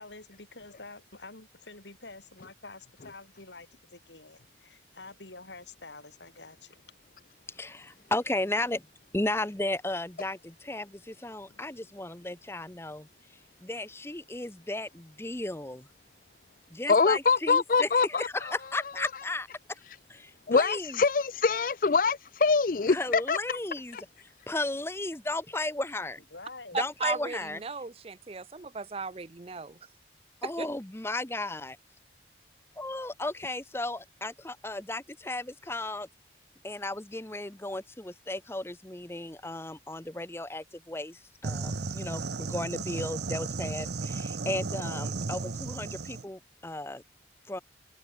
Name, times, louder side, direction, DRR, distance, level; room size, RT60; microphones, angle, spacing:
voice 1, 0.0-6.8 26.3-26.9, left 3 dB, 85° left, 5.5 m, -48 dB
voice 2, 7.5-8.8 9.1-13.1 13.6-15.9 16.7-19.8 20.1-21.0 22.9-24.0 24.5-26.2 26.7-27.6 30.4-31.8 32.8-36.1 36.6-47.0 47.5-47.6, left 2 dB, 15° left, 0.8 m, -35 dB
voice 3, 16.9-18.3 20.5-23.4, left 4 dB, 50° left, 0.5 m, -24 dB
voice 4, 26.7-29.8 30.4-30.7, right 4 dB, 35° right, 0.5 m, -36 dB
sound 1, 41.4-46.2, right 3 dB, 70° right, 0.9 m, -34 dB
head